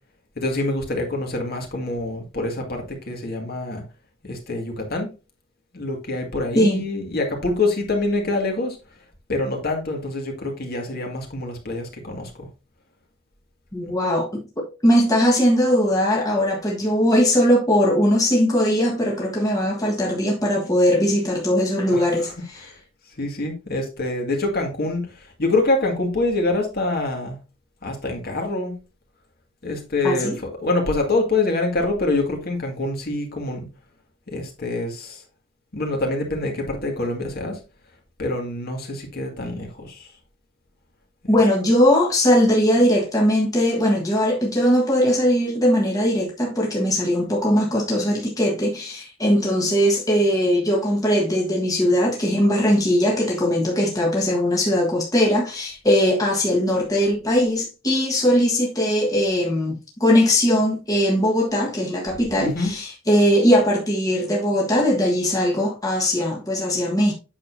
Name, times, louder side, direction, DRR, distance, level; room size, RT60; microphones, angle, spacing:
voice 1, 0.4-3.8 4.2-5.1 5.7-8.8 9.3-12.5 13.8-13.9 21.9-22.3 22.6-22.7 23.2-27.4 27.8-28.7 29.6-33.7 34.3-35.2 35.7-37.6 38.2-40.1 62.4-62.7, left 2 dB, 50° left, 2.1 m, -25 dB
voice 2, 13.7-22.7 30.0-30.4 41.3-67.1, equal, 15° left, 1.5 m, -20 dB
8.5 x 6.4 x 2.7 m
head